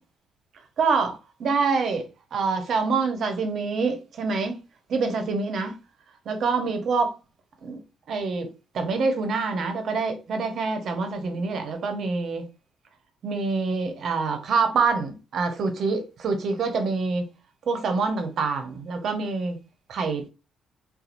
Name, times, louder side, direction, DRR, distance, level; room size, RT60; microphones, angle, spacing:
voice 1, 0.8-4.5 4.9-5.8 6.3-7.1 7.6-7.8 8.1-8.5 8.7-12.4 13.2-17.3 17.7-19.6 19.9-20.3, right 4 dB, 65° right, 0.7 m, -26 dB
2.8 x 2.3 x 2.4 m
cardioid pair, 90°, 0 cm